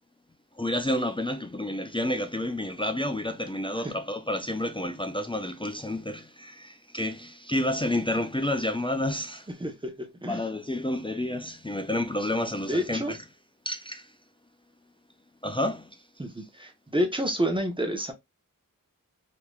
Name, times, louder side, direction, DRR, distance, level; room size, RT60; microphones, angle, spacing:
voice 1, 0.6-9.5 10.3-13.2 13.7-14.1 15.4-16.0, left 1 dB, 15° left, 0.4 m, -30 dB
voice 2, 9.5-10.4 12.7-13.1 16.2-18.1, equal, 15° right, 1.0 m, -29 dB
3.4 x 2.9 x 2.4 m
wide cardioid pair, 55°, 34 cm